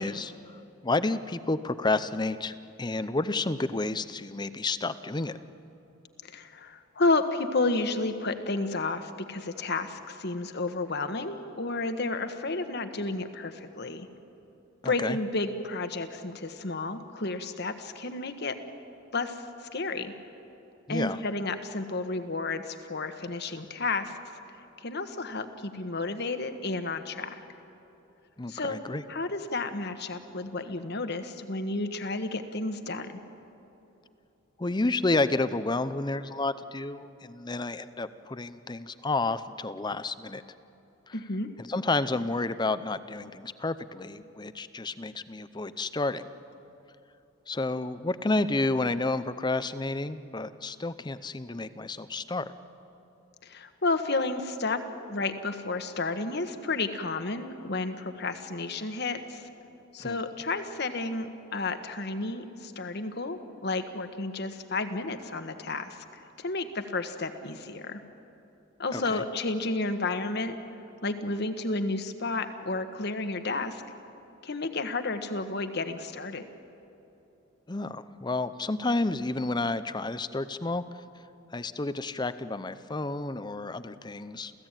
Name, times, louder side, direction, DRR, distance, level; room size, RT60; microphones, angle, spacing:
voice 1, 0.0-5.4 14.8-15.2 20.9-21.2 28.4-29.0 34.6-40.4 41.1-41.2 41.6-46.3 47.5-52.5 60.0-60.2 68.9-69.2 77.7-81.0 81.5-84.5, left 2 dB, 20° left, 13 dB, 0.7 m, -30 dB
voice 2, 6.3-14.1 14.8-18.5 19.1-19.4 19.7-20.1 20.9-24.2 24.8-27.4 28.5-28.8 29.1-33.1 41.1-41.5 53.4-54.8 55.1-59.5 59.9-68.0 68.8-70.5 71.0-73.8 74.4-76.5, left 3 dB, 55° left, 8 dB, 1.4 m, -31 dB
29.0 x 15.5 x 9.0 m, 2.9 s
head